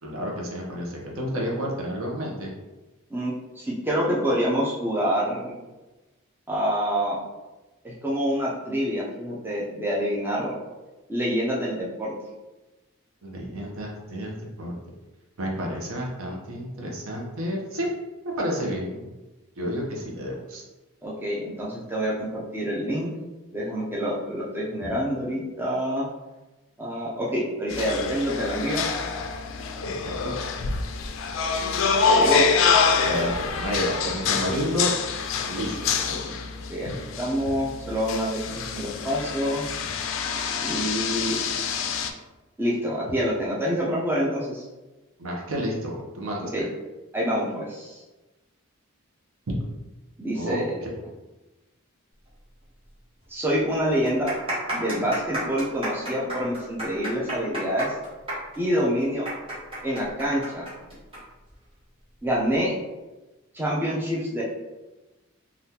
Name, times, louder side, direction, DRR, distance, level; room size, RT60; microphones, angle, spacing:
voice 1, 0.0-2.5 13.2-14.7 15.4-17.9 18.4-19.1 19.6-20.6 29.9-30.3 33.0-34.9 35.5-35.8 45.2-46.7 49.5-49.6 50.3-50.9, equal, 75° right, -1 dB, 0.7 m, -30 dB
voice 2, 3.1-5.6 6.5-7.2 7.8-10.5 11.1-12.1 21.0-23.1 23.5-26.1 26.8-28.9 32.1-32.5 36.1-36.4 36.7-36.9 37.2-39.6 40.6-41.4 42.6-44.7 46.5-46.6 47.1-48.0 50.2-50.8 53.3-54.3 54.7-57.9 58.6-59.2 59.8-60.7 62.2-62.7 63.5-64.4, equal, 10° right, -6 dB, 0.5 m, -27 dB
sound 1, 27.7-42.1, left 5 dB, 65° left, 0.3 m, -26 dB
sound 2, 52.9-53.0 53.2-53.3 53.9-61.2 61.5-61.6 62.3-62.6, right 1 dB, 25° right, 0.9 m, -32 dB
3.5 x 2.4 x 2.8 m, 1.1 s
head